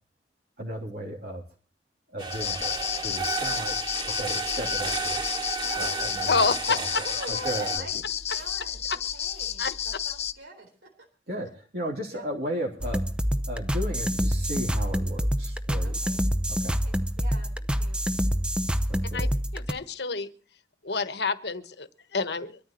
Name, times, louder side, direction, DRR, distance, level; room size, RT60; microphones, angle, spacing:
voice 1, 0.6-1.4 2.1-5.2 5.7-6.9 7.3-8.0 8.3-8.5 9.4-9.5 11.3-13.0 13.5-16.0 16.5-16.8 18.9-19.3, equal, 60° right, -2 dB, 3.0 m, -35 dB
sound 1, 2.2-7.8, right 4 dB, 30° right, 2.6 m, -32 dB
sound 2, 2.3-10.3, left 9 dB, 35° left, 0.7 m, -32 dB
voice 2, 5.6-6.1 6.9-7.9 8.2-10.9 12.1-12.3 15.8-16.2 16.8-18.0, right 2 dB, 85° right, 1 dB, 4.0 m, -44 dB
voice 3, 6.3-7.0 9.6-9.7 19.1-19.3 19.5-20.3 20.8-22.6, left 4 dB, 65° left, 12 dB, 1.2 m, -28 dB
sound 3, 12.8-19.7, equal, 5° right, 0.7 m, -27 dB
24.0 x 13.5 x 3.0 m, 0.39 s
head